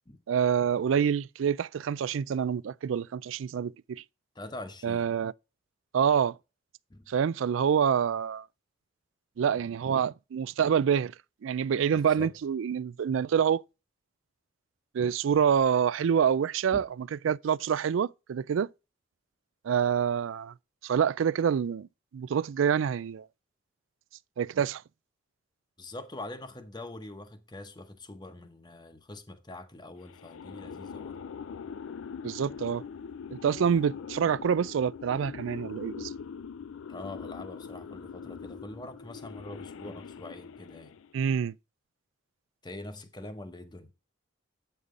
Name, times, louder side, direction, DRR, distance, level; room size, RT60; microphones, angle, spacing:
voice 1, 0.3-4.0 4.8-5.3 5.9-6.4 7.1-8.4 9.4-11.1 11.4-13.6 14.9-18.7 19.6-20.5 20.8-21.9 22.1-23.3 24.4-24.8 32.2-32.8 33.3-36.1 41.1-41.5, right 7 dB, 75° right, 0.3 m, -27 dB
voice 2, 4.3-5.1 6.9-7.1 11.9-12.3 16.7-16.8 25.8-31.2 36.9-41.0 42.6-43.9, left 2 dB, 20° left, 0.9 m, -44 dB
sound 1, 30.0-41.2, left 6 dB, 85° left, 0.4 m, -42 dB
8.1 x 5.5 x 3.7 m
head